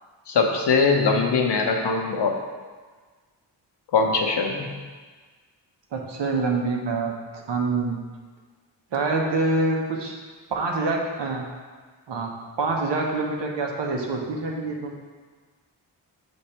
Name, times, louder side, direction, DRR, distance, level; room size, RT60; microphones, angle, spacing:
voice 1, 0.3-2.3 3.9-4.7, left 4 dB, 70° left, 2 dB, 0.9 m, -21 dB
voice 2, 5.9-7.1 7.5-8.0 8.9-10.2 10.5-11.4 12.1-12.3 12.6-14.9, right 3 dB, 75° right, 0 dB, 1.0 m, -25 dB
6.7 x 3.3 x 4.3 m, 1.4 s
cardioid pair, 80°, 43 cm